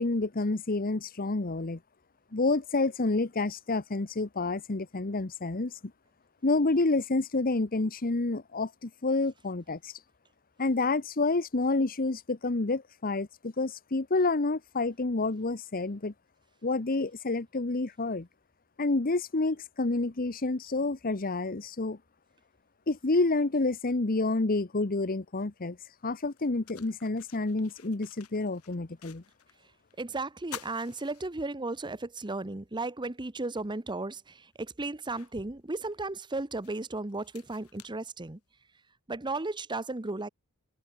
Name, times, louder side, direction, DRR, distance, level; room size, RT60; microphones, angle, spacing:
voice 1, 0.0-1.8 2.3-5.7 6.4-9.9 10.6-16.1 16.6-18.3 18.8-22.0 22.9-25.8 26.0-29.2, left 3 dB, 40° left, 1.0 m, -29 dB
sound 1, 25.6-25.7 26.2-29.6 29.9-30.0 30.4-31.9 32.3-32.4 33.9-34.0 34.5-38.7, left 8 dB, 80° left, 2.3 m, -50 dB
voice 2, 30.0-38.4 39.1-40.3, right 2 dB, 20° right, 0.9 m, -35 dB
open air
head